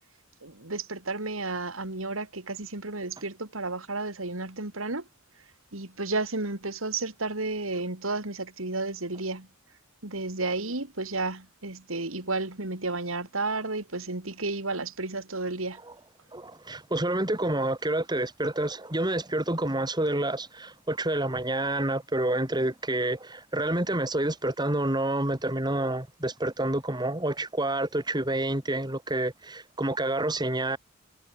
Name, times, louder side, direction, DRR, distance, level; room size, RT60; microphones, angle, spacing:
voice 1, 0.4-5.0 5.7-9.5 10.0-15.8, right 3 dB, 80° right, 3.2 m, -32 dB
voice 2, 16.3-30.8, right 1 dB, 20° right, 2.7 m, -28 dB
head